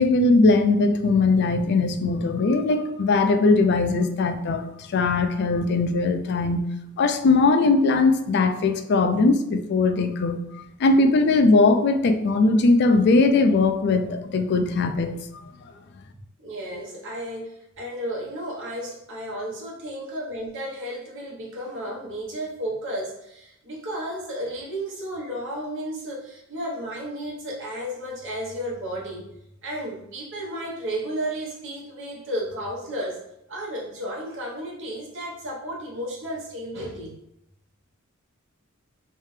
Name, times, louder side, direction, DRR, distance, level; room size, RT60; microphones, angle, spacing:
voice 1, 0.0-6.7 7.0-10.4 10.8-15.4, left 3 dB, 55° left, 8 dB, 0.4 m, -20 dB
voice 2, 16.1-29.3 29.6-33.2 33.5-37.2, right 1 dB, 60° right, -3 dB, 1.1 m, -33 dB
3.3 x 3.2 x 3.2 m, 0.81 s
head